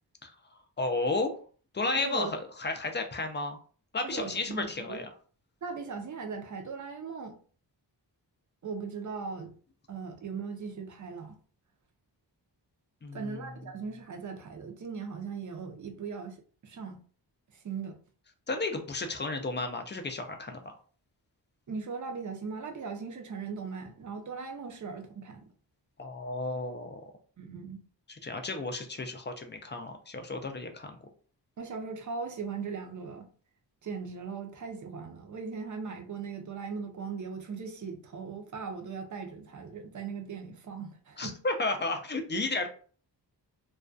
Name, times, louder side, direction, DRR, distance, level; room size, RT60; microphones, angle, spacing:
voice 1, 0.8-1.4 1.7-3.6 3.9-5.1 13.0-13.5 18.5-20.7 26.0-27.0 28.2-31.0 41.2-42.7, left 3 dB, 30° left, 5 dB, 0.3 m, -33 dB
voice 2, 1.9-2.3 4.0-5.0 5.6-7.4 8.6-9.5 9.9-11.4 13.1-17.0 17.5-18.0 21.7-25.5 27.4-27.8 31.6-33.3 33.8-41.4, right 5 dB, 45° right, 5 dB, 0.5 m, -39 dB
2.3 x 2.2 x 2.4 m, 0.42 s
wide cardioid pair, 105°, 43 cm